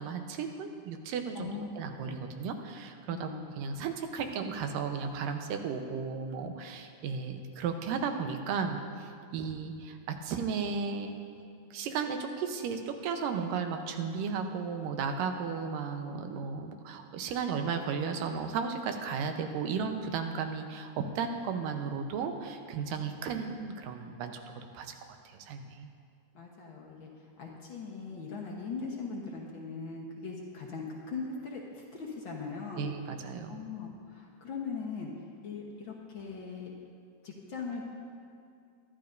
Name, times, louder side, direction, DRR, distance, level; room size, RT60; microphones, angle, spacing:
voice 1, 0.0-3.3 3.6-11.1 11.7-25.9 32.8-33.6, right 6 dB, 90° right, 5 dB, 2.5 m, -35 dB
voice 2, 1.3-2.2 3.1-3.4 26.3-27.1 27.4-32.9 33.5-35.1 35.4-36.7 37.2-37.9, left 4 dB, 65° left, -2 dB, 1.2 m, -40 dB
23.0 x 11.5 x 2.6 m, 2.4 s
omnidirectional pair, 3.8 m